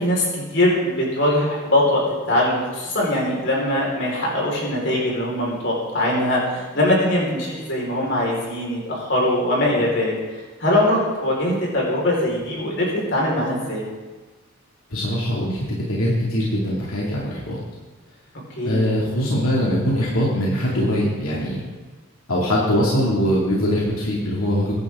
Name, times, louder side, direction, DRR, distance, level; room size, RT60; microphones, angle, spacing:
voice 1, 0.0-13.8 18.5-18.9, left 1 dB, 55° left, -3 dB, 4.7 m, -22 dB
voice 2, 14.9-17.6 18.6-21.6 22.3-24.7, equal, 80° left, -4 dB, 2.5 m, -22 dB
22.5 x 10.5 x 3.8 m, 1.3 s
head